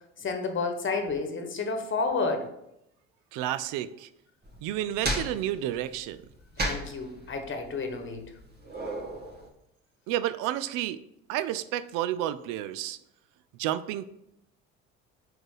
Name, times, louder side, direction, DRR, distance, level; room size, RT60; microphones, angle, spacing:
voice 1, 0.2-2.5 6.6-8.2, left 4 dB, 35° left, 5 dB, 1.2 m, -30 dB
voice 2, 3.3-4.1 4.6-6.2 10.1-11.0 11.3-13.0 13.6-14.0, right 12 dB, 70° right, 14 dB, 0.5 m, -30 dB
sound 1, 4.4-9.5, right 1 dB, 30° right, 1.6 m, -35 dB
4.7 x 4.3 x 4.8 m, 0.80 s
hypercardioid pair, 65°, 32 cm